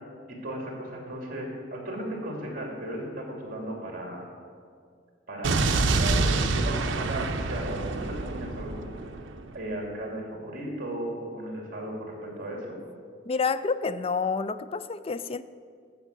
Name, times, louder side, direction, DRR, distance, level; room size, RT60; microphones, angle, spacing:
voice 1, 0.3-4.3 5.3-8.9 9.5-12.8, right 1 dB, 50° right, -1 dB, 2.8 m, -36 dB
Explosion, 5.4-9.5, right 3 dB, 75° right, 0.7 m, -27 dB
voice 2, 13.3-15.4, left 5 dB, 30° left, 14 dB, 0.4 m, -28 dB
14.5 x 5.0 x 8.1 m, 2.2 s
head